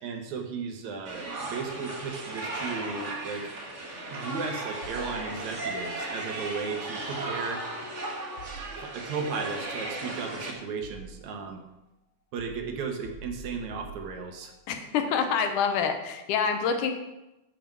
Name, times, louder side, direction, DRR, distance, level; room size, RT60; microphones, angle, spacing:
voice 1, 0.0-3.5 4.1-7.7 8.8-11.6 12.3-14.5, right 5 dB, 70° right, 4 dB, 2.3 m, -35 dB
sound 1, 1.0-10.5, right 2 dB, 50° right, 0.8 m, -36 dB
sound 2, 4.8-5.7 8.4-9.2 10.1-11.5 12.4-14.6, right 2 dB, 50° left, 1.9 m, -47 dB
voice 2, 14.7-16.9, left 6 dB, 85° left, 6 dB, 2.5 m, -26 dB
7.1 x 6.9 x 7.5 m, 0.96 s
omnidirectional pair, 3.6 m